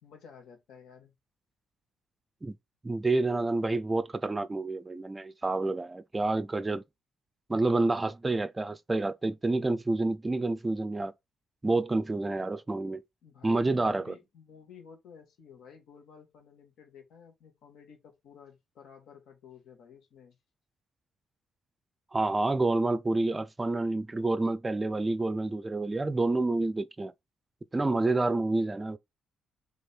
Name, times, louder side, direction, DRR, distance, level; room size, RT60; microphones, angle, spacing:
voice 1, 0.0-1.1 13.2-20.4, left 7 dB, 70° left, 1.5 m, -53 dB
voice 2, 2.8-6.8 7.5-11.1 11.6-13.0 13.4-14.1 22.1-27.1 27.7-29.0, right 2 dB, 25° right, 0.4 m, -28 dB
3.4 x 3.2 x 4.3 m
hypercardioid pair, 50°, 0 cm